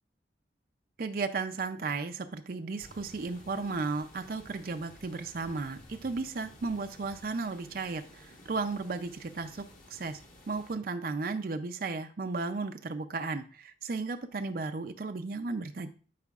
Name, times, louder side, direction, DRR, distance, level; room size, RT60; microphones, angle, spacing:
voice 1, 1.0-10.2 10.5-15.9, right 3 dB, 50° right, 7 dB, 0.5 m, -34 dB
sound 1, 2.8-10.8, left 1 dB, 45° left, 1.3 m, -54 dB
11.5 x 4.9 x 2.4 m, 0.39 s
head